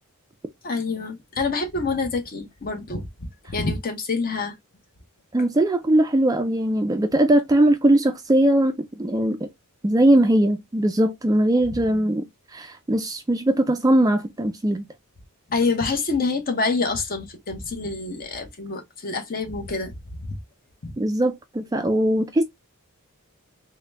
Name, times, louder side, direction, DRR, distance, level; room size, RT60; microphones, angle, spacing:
voice 1, 0.6-4.5 15.5-20.4 20.8-20.9, left 4 dB, 40° left, 0.8 m, -27 dB
voice 2, 5.3-9.5 9.8-12.3 12.5-14.8 21.0-22.4, right 1 dB, 15° right, 0.3 m, -20 dB
3.8 x 2.1 x 3.2 m
head